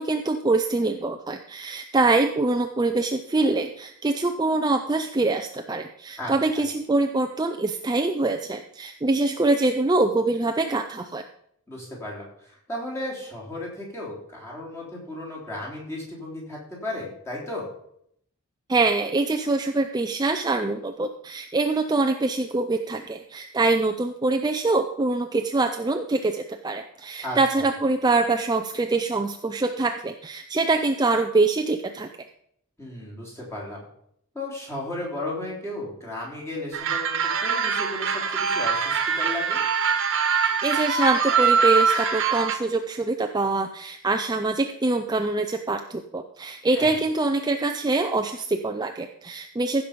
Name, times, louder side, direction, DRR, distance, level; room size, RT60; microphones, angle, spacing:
voice 1, 0.0-11.2 18.7-32.1 40.6-49.8, right 3 dB, 20° right, 6 dB, 0.5 m, -24 dB
voice 2, 11.7-17.7 27.2-27.7 32.8-33.8 34.4-39.6 46.7-46.9, left 1 dB, 10° left, -4 dB, 3.5 m, -35 dB
sound 1, 36.7-42.6, right 6 dB, 60° right, 1.3 m, -23 dB
15.5 x 6.1 x 5.1 m, 0.70 s
head